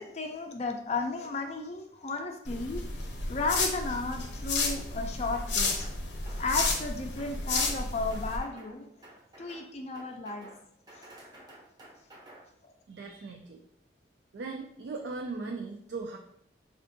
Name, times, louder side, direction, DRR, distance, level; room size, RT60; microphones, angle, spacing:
voice 1, 0.0-2.8 3.3-5.9 6.3-8.9 9.4-10.5 10.9-11.1 12.6-12.7, left 3 dB, 35° left, 4 dB, 0.4 m, -34 dB
sound 1, 2.5-8.4, left 3 dB, 80° left, 0.6 m, -32 dB
sound 2, 5.3-6.0 6.3-6.9 7.2-7.8 8.1-8.7 9.0-9.7 9.9-10.6 10.9-12.4, right 1 dB, 20° right, 0.6 m, -51 dB
voice 2, 12.9-13.6 14.3-16.2, right 3 dB, 75° right, 2 dB, 0.4 m, -38 dB
4.4 x 2.4 x 2.5 m, 0.71 s
head